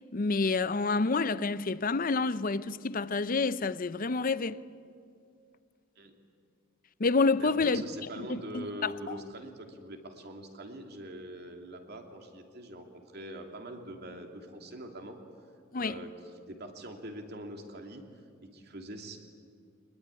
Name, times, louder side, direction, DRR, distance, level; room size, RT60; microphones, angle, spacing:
voice 1, 0.1-4.6 7.0-7.8 8.2-8.9 15.7-16.0, left 4 dB, 45° left, 0.6 m, -28 dB
voice 2, 7.4-12.9 13.1-15.2 15.7-16.1 16.5-18.0 18.4-19.2, right 1 dB, 55° right, 2.8 m, -43 dB
24.0 x 21.0 x 9.9 m
head